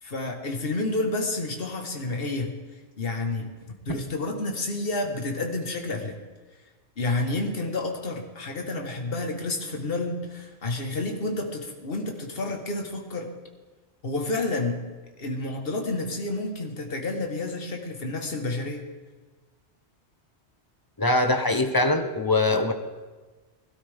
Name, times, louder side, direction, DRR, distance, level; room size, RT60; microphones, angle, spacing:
voice 1, 0.0-2.5 3.0-3.5 3.8-6.2 7.0-13.3 14.0-14.8 15.2-18.8, left 2 dB, 55° left, 3 dB, 1.7 m, -30 dB
voice 2, 21.0-22.7, left 2 dB, 20° left, 7 dB, 0.9 m, -22 dB
21.0 x 12.5 x 3.6 m, 1.3 s
omnidirectional pair, 1.2 m